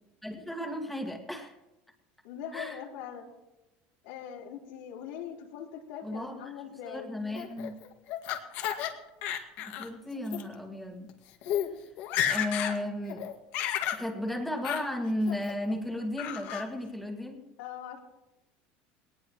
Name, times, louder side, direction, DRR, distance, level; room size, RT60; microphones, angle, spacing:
voice 1, 0.2-1.5 2.5-2.8 6.0-6.4 6.9-7.8 9.7-11.1 12.3-13.2 13.9-17.4, left 1 dB, ahead, 3 dB, 1.9 m, -34 dB
voice 2, 2.2-3.3 4.0-7.1 17.6-18.0, left 9 dB, 85° left, -2 dB, 4.0 m, -41 dB
Laughter, 7.3-8.9 9.2-9.9 10.2-10.4 11.1-11.2 11.4-11.7 12.0-12.8 13.1-14.0 14.6-14.8 15.3-15.7 16.2-16.6, left 10 dB, 60° left, 1.9 m, -32 dB
22.0 x 19.0 x 3.1 m, 0.98 s
cardioid pair, 155°, 4 cm